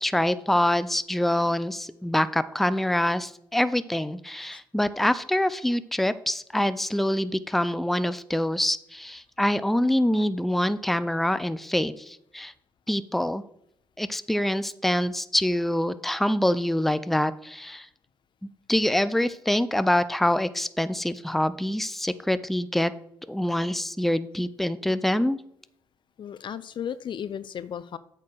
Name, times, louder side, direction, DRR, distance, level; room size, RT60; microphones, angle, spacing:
voice 1, 0.0-12.5 12.9-13.4 14.0-17.9 18.7-22.9 23.3-25.4, left 1 dB, ahead, 14 dB, 0.5 m, -25 dB
voice 2, 26.2-28.0, left 8 dB, 50° left, 15 dB, 0.5 m, -35 dB
8.3 x 4.4 x 6.4 m, 0.72 s
hypercardioid pair, 50°, 11 cm